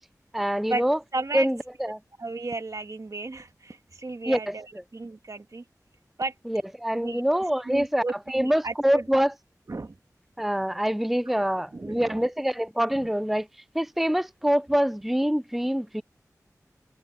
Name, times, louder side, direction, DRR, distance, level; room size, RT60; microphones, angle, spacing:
voice 1, 0.3-1.0 1.3-2.0 4.3-4.5 6.5-9.3 10.4-16.0, equal, 5° right, 0.5 m, -25 dB
voice 2, 1.1-1.5 2.2-5.6 6.2-6.3 6.9-7.2 7.7-9.1 9.7-10.0 11.3-12.3 12.9-13.1, right 3 dB, 60° right, 1.8 m, -34 dB
wide cardioid pair, 45°, 6 cm